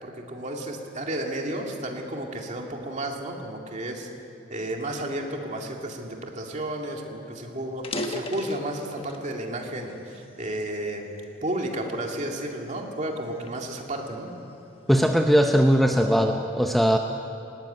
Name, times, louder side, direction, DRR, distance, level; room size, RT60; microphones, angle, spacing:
voice 1, 0.0-4.1 4.5-11.1 11.4-14.3, right 1 dB, 35° right, 1 dB, 2.3 m, -32 dB
sound 1, 7.1-7.2 7.7-9.3 9.8-11.1 11.7-12.0 12.6-14.6, left 1 dB, 25° left, 1.3 m, -37 dB
voice 2, 14.9-17.0, equal, ahead, 3 dB, 0.7 m, -20 dB
19.0 x 18.5 x 9.2 m, 2.8 s
head